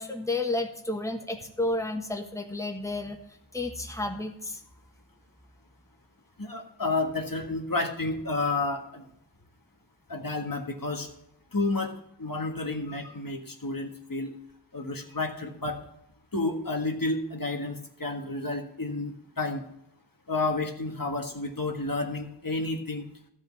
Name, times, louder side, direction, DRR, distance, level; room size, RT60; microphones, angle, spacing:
voice 1, 0.0-3.2 3.5-4.6, left 2 dB, 5° left, 2 dB, 1.4 m, -31 dB
voice 2, 6.4-9.0 10.1-11.1 11.5-11.9 12.2-14.3 14.7-15.8 16.3-19.6 20.3-23.0, left 2 dB, 50° left, 2 dB, 1.6 m, -30 dB
13.0 x 5.2 x 7.3 m, 0.78 s
wide cardioid pair, 45°, 43 cm